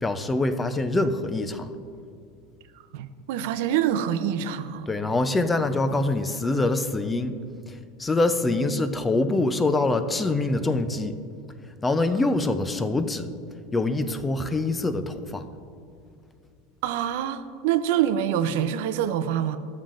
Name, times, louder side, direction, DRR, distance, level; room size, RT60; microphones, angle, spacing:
voice 1, 0.0-1.7 4.9-7.4 8.0-11.1 11.8-13.3 13.7-15.4, left 2 dB, 15° left, 10 dB, 0.5 m, -24 dB
voice 2, 2.9-4.9 16.8-19.6, right 10 dB, 70° right, 11 dB, 0.5 m, -25 dB
12.5 x 7.3 x 2.5 m, 2.5 s
supercardioid pair, 110°, 0 cm